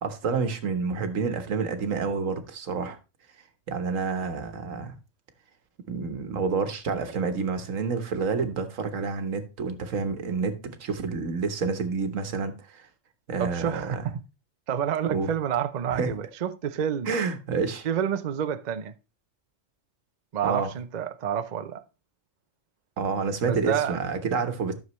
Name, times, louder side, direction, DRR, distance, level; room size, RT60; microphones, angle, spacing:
voice 1, 0.0-3.0 3.7-4.9 5.9-12.9 13.3-14.0 15.1-15.3 16.0-16.1 17.0-17.9 20.4-20.7 23.0-24.7, right 5 dB, 85° right, 1.5 m, -28 dB
voice 2, 13.4-14.2 14.7-17.1 17.8-18.9 20.3-21.8 23.5-24.0, right 8 dB, 45° right, 0.6 m, -29 dB
12.5 x 6.7 x 3.1 m
omnidirectional pair, 1.3 m